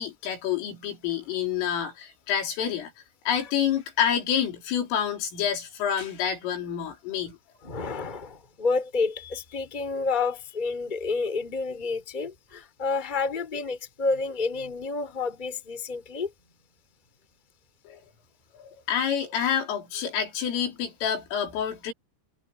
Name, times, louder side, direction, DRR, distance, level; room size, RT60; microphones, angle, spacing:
voice 1, 0.0-2.9 3.3-7.4 17.9-18.0 18.5-21.9, left 8 dB, 80° left, 6.6 m, -28 dB
voice 2, 7.6-16.3, left 4 dB, 10° left, 2.8 m, -29 dB
omnidirectional pair, 5.8 m